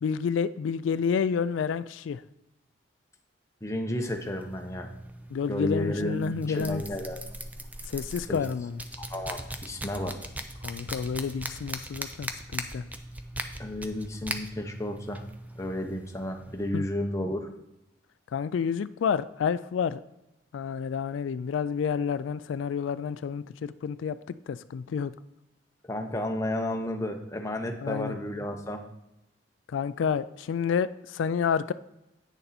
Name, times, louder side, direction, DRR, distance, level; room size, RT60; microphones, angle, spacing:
voice 1, 0.0-2.2 5.3-6.8 7.9-8.8 10.6-12.8 16.7-16.8 18.3-20.0 20.5-24.2 24.5-25.1 27.8-28.1 29.7-31.7, left 6 dB, 90° left, 14 dB, 0.3 m, -29 dB
voice 2, 3.6-4.9 5.5-7.2 8.2-8.4 9.0-10.2 13.6-15.2 15.6-17.5 25.8-28.8, left 1 dB, 15° left, 3 dB, 0.9 m, -32 dB
sound 1, 4.1-16.7, right 1 dB, 10° right, 0.5 m, -40 dB
9.1 x 6.6 x 4.2 m, 0.90 s
head